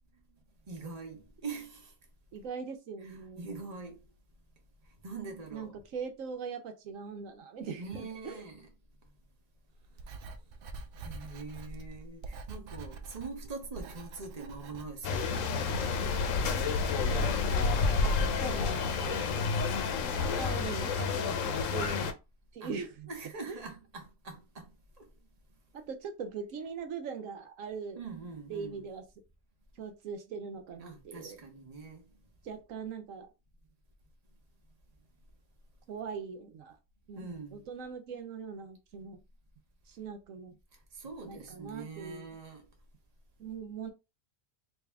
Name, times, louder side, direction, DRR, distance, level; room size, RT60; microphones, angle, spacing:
voice 1, 0.3-1.9 3.0-4.1 4.8-5.8 7.8-8.7 9.0-9.1 11.0-15.6 22.6-22.8 23.1-25.3 27.9-28.8 30.8-32.1 37.1-37.7 40.7-42.7, right 4 dB, 35° right, 1.0 m, -44 dB
voice 2, 2.3-3.5 5.5-8.4 16.0-16.1 17.1-18.0 18.4-19.4 20.1-22.2 22.5-23.1 23.5-23.6 25.9-28.0 28.5-29.0 29.7-31.4 32.4-33.3 35.9-36.8 37.1-39.2 39.9-40.6 41.2-42.2 43.4-43.9, right 5 dB, 80° right, 1.1 m, -41 dB
Writing, 9.8-20.6, right 3 dB, 60° right, 0.6 m, -45 dB
sound 1, 15.0-22.1, left 5 dB, 75° left, 1.0 m, -29 dB
3.4 x 2.7 x 3.4 m
omnidirectional pair, 1.4 m